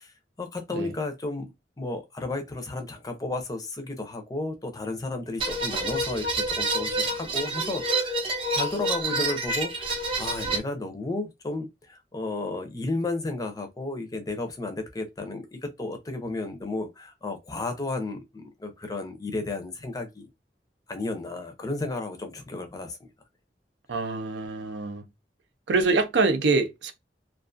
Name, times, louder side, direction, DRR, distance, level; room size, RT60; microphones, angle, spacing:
voice 1, 0.0-1.5 1.8-8.2 8.5-20.3 20.9-23.0, left 2 dB, 20° left, 0.5 m, -33 dB
sound 1, 5.4-10.6, right 2 dB, 30° right, 0.6 m, -28 dB
voice 2, 23.9-25.0 25.7-26.9, right 3 dB, 80° right, 0.5 m, -25 dB
2.4 x 2.3 x 2.4 m
head